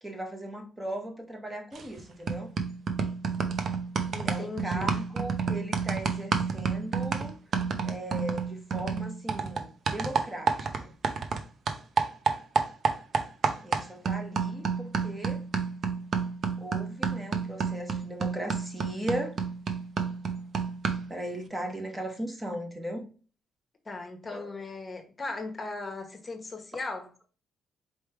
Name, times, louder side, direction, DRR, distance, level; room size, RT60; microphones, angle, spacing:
voice 1, 0.0-2.5 4.2-7.4 7.8-10.9 13.6-15.4 16.6-19.3 21.1-23.1 24.3-24.5, right 1 dB, 15° right, 1.1 m, -37 dB
sound 1, 1.8-2.0 2.3-11.4 11.7-21.2, right 5 dB, 55° right, 0.7 m, -30 dB
voice 2, 4.1-4.9 23.8-27.1, left 3 dB, 30° left, 1.1 m, -38 dB
4.5 x 3.2 x 3.3 m
cardioid pair, 90°, 0 cm